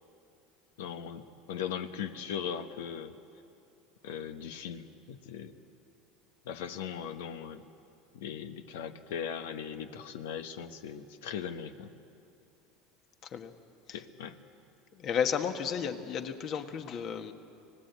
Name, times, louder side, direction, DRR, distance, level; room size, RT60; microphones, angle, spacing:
voice 1, 0.8-3.1 4.0-5.6 6.4-7.6 8.1-11.9 13.9-14.3, left 8 dB, 85° left, 9 dB, 1.2 m, -39 dB
voice 2, 14.9-17.3, left 7 dB, 50° left, 7 dB, 1.6 m, -33 dB
25.0 x 19.0 x 8.3 m, 2.7 s
supercardioid pair, 100°, 0 cm